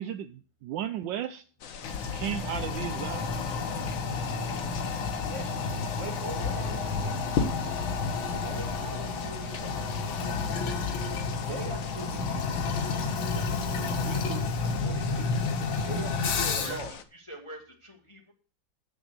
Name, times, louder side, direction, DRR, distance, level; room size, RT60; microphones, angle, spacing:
voice 1, 0.0-1.4 2.1-3.3, right 10 dB, 75° right, 10 dB, 1.2 m, -34 dB
sound 1, 1.6-17.0, left 7 dB, 55° left, 1.0 m, -44 dB
Toilet flush, 1.8-16.9, left 4 dB, 85° left, 2.1 m, -30 dB
voice 2, 5.2-7.1 8.4-10.1 11.1-12.7 13.3-15.3 15.9-16.9, right 3 dB, 35° right, 4 dB, 2.4 m, -41 dB
voice 3, 16.4-16.8 17.1-18.3, right 1 dB, 20° left, 3 dB, 1.1 m, -44 dB
7.9 x 7.2 x 6.4 m, 0.41 s
omnidirectional pair, 2.1 m